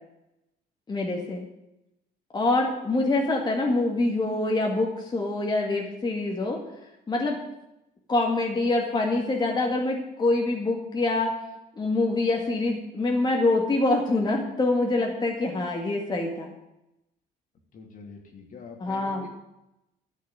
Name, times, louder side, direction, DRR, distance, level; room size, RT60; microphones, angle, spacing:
voice 1, 0.9-1.4 2.3-6.6 7.1-7.4 8.1-11.3 11.8-16.5 18.8-19.3, left 2 dB, 25° left, 0 dB, 2.1 m, -25 dB
voice 2, 17.7-19.3, left 4 dB, 55° left, 2 dB, 2.8 m, -44 dB
12.5 x 6.5 x 9.7 m, 0.90 s
cardioid pair, 110°, 17 cm